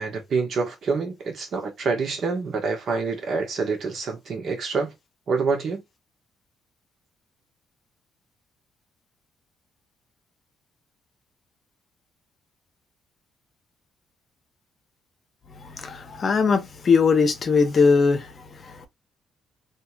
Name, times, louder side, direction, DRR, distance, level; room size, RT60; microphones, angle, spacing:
voice 1, 0.0-4.9 5.3-5.8, right 4 dB, 55° right, 1.1 m, -26 dB
voice 2, 15.6-18.9, left 5 dB, 45° left, 0.7 m, -21 dB
2.8 x 2.8 x 2.3 m
cardioid pair, 90°, 0 cm